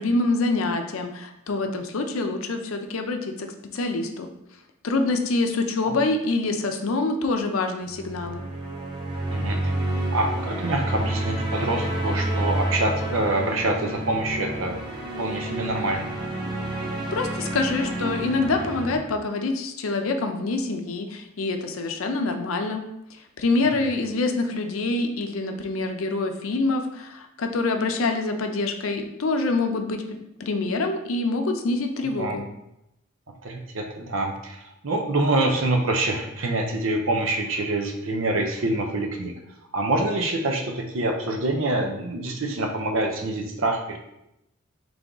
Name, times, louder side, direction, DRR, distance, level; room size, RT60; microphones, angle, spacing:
voice 1, 0.0-4.3 4.8-8.4 17.1-22.8 23.4-32.4, left 3 dB, 90° left, 5 dB, 0.5 m, -26 dB
sound 1, 7.9-19.0, right 1 dB, 25° right, 0.7 m, -29 dB
voice 2, 9.3-9.8 10.1-14.8 15.2-16.1 23.6-23.7 32.2-32.4 33.4-39.3 39.7-44.0, right 2 dB, 75° right, 3 dB, 0.7 m, -26 dB
3.5 x 3.4 x 3.8 m, 0.84 s
head